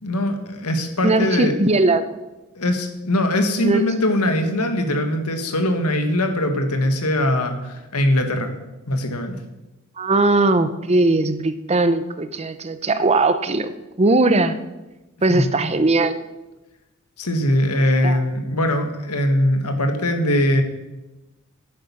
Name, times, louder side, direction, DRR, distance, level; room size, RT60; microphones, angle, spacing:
voice 1, 0.0-1.6 2.5-8.5 8.9-9.4 15.3-15.5 17.2-20.6, left 1 dB, 90° left, 6 dB, 1.8 m, -21 dB
voice 2, 1.0-2.0 3.6-3.8 10.0-13.7 14.0-14.6 15.2-16.2 18.0-18.2, right 2 dB, 30° right, 11 dB, 0.7 m, -19 dB
10.5 x 9.0 x 7.1 m, 1.0 s
head